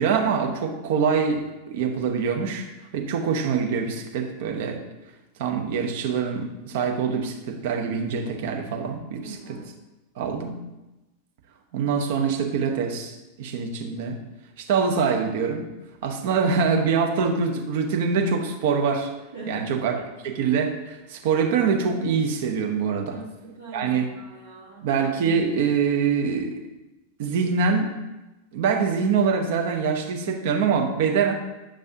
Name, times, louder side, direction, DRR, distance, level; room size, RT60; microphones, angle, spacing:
voice 1, 0.0-2.7 2.9-4.8 5.4-9.6 10.2-10.5 11.7-14.2 14.6-15.7 16.0-19.1 19.5-23.2 23.7-24.1 24.8-26.6 27.2-27.9 28.5-31.3, right 5 dB, 50° right, 3 dB, 0.9 m, -24 dB
voice 2, 9.2-9.7 19.3-19.7 23.1-24.9, right 3 dB, 75° right, -9 dB, 2.4 m, -41 dB
8.8 x 5.3 x 2.8 m, 1.0 s
figure-of-eight pair, 90°, 0 cm